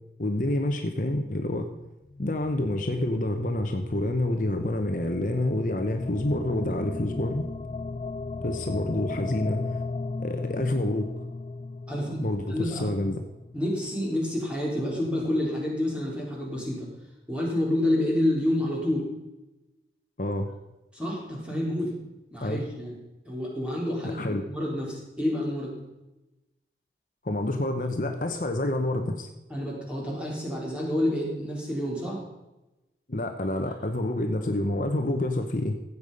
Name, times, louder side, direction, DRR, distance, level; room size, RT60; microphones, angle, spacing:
voice 1, 0.2-1.7 2.2-7.5 8.4-9.8 10.2-11.1 12.2-13.2 20.2-20.5 22.4-22.6 24.0-24.4 27.2-29.3 33.1-35.8, left 1 dB, 50° left, 5 dB, 1.0 m, -28 dB
sound 1, 2.0-14.3, left 3 dB, 30° left, 0.3 m, -37 dB
voice 2, 11.9-12.2 12.5-12.9 13.5-16.9 17.3-19.1 20.9-22.0 22.3-23.0 23.2-25.8 29.5-32.2, left 1 dB, 5° right, -4 dB, 3.7 m, -28 dB
15.5 x 8.3 x 5.4 m, 1.0 s
head